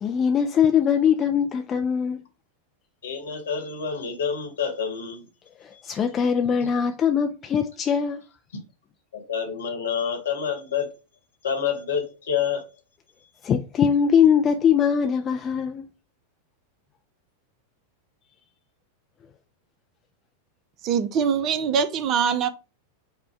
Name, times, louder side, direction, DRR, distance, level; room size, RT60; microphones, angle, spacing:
voice 1, 0.0-2.2 5.6-8.2 13.4-15.9, left 7 dB, 25° left, 0.4 m, -22 dB
voice 2, 3.0-5.3 5.7-5.8 9.1-10.9 11.4-12.6, left 7 dB, 65° left, 1.2 m, -28 dB
voice 3, 20.8-22.5, right 7 dB, 35° right, 0.5 m, -23 dB
5.1 x 2.1 x 4.5 m
figure-of-eight pair, 90°, 0 cm